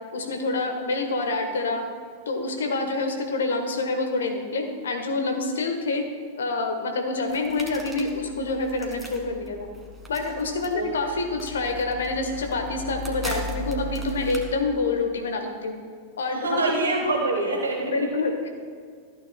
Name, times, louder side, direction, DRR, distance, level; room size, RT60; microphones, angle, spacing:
voice 1, 0.1-1.8 2.3-6.0 6.4-9.6 10.1-15.7 16.2-16.6 17.8-18.5, left 3 dB, 65° left, 4 dB, 1.2 m, -27 dB
sound 1, 7.3-14.4, equal, 5° right, 1.7 m, -38 dB
voice 2, 16.3-18.1, right 2 dB, 70° right, -1 dB, 1.4 m, -25 dB
14.0 x 9.2 x 2.2 m, 2.1 s
figure-of-eight pair, 90°, 0 cm